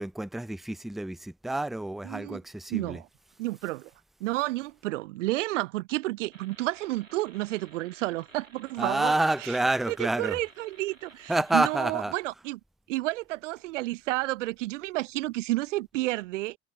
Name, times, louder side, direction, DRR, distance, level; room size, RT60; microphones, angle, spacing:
voice 1, 0.0-3.0 8.8-10.4 11.3-12.1, right 2 dB, ahead, 0.6 m, -28 dB
voice 2, 2.0-2.4 2.7-3.1 3.4-3.9 4.2-9.6 9.9-12.6 12.9-16.6, right 18 dB, 70° right, 0.6 m, -31 dB
sound 1, 6.3-11.8, right 4 dB, 90° right, 3.9 m, -54 dB
figure-of-eight pair, 65°, 39 cm